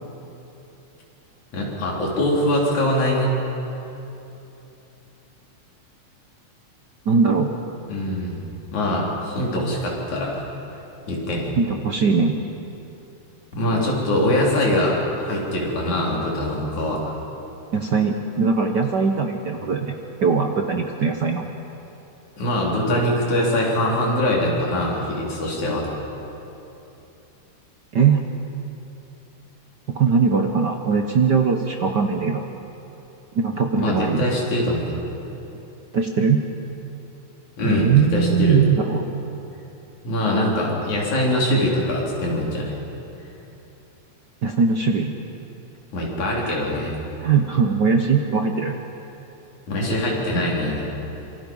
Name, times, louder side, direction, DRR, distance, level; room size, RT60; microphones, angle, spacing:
voice 1, 1.5-3.3 7.9-8.4 8.7-10.4 11.1-11.5 13.5-17.1 22.4-25.9 33.7-35.0 37.6-38.6 40.0-42.8 45.9-46.9 49.7-50.9, left 1 dB, 80° left, -3 dB, 5.2 m, -23 dB
voice 2, 7.1-7.5 11.6-12.3 17.7-20.0 20.2-21.5 27.9-28.2 29.9-32.4 33.3-34.3 35.9-36.4 37.6-39.0 44.4-45.1 46.4-46.6 47.2-48.7, right 5 dB, 65° right, 4 dB, 1.1 m, -20 dB
26.5 x 24.5 x 5.5 m, 3.0 s
omnidirectional pair, 3.3 m